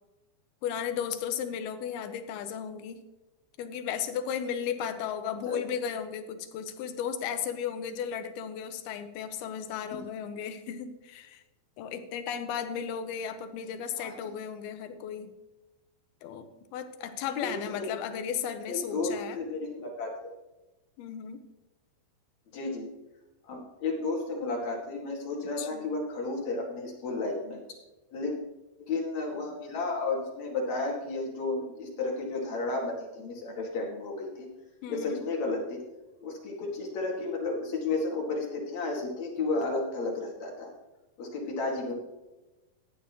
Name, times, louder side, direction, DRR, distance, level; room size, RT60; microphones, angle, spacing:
voice 1, 0.6-3.0 3.6-11.4 11.8-15.3 16.2-19.4 21.0-21.5 25.6-25.9 34.8-35.2, left 8 dB, 80° left, 9 dB, 2.7 m, -35 dB
voice 2, 17.4-17.9 18.7-20.3 22.5-22.9 23.4-27.8 28.1-28.3 28.9-34.5 34.9-35.8 36.2-40.7 41.2-41.9, left 3 dB, 50° left, -1 dB, 3.1 m, -32 dB
15.0 x 10.5 x 3.1 m, 1.1 s
omnidirectional pair, 4.5 m